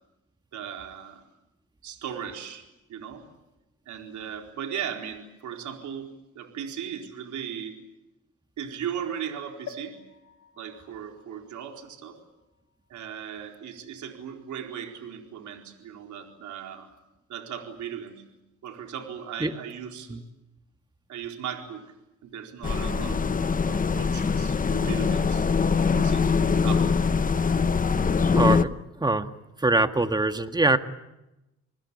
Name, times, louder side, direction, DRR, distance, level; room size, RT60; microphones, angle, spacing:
voice 1, 0.5-1.2 1.8-2.6 2.9-3.3 3.9-6.1 6.3-7.8 8.6-10.0 10.6-12.2 12.9-16.9 17.3-18.2 18.6-20.2 21.1-21.9 22.2-25.5 25.9-27.3, right 8 dB, 75° right, 3 dB, 4.4 m, -37 dB
sound 1, 9.7-13.3 13.9-14.0 14.2-14.3, left 5 dB, 65° left, 4.3 m, -48 dB
sound 2, 22.6-28.6, left 5 dB, 25° left, 1.0 m, -23 dB
voice 2, 28.3-29.3 29.6-30.8, right 2 dB, 15° right, 8 dB, 1.7 m, -23 dB
28.0 x 20.5 x 8.5 m, 0.95 s
cardioid pair, 90°, 30 cm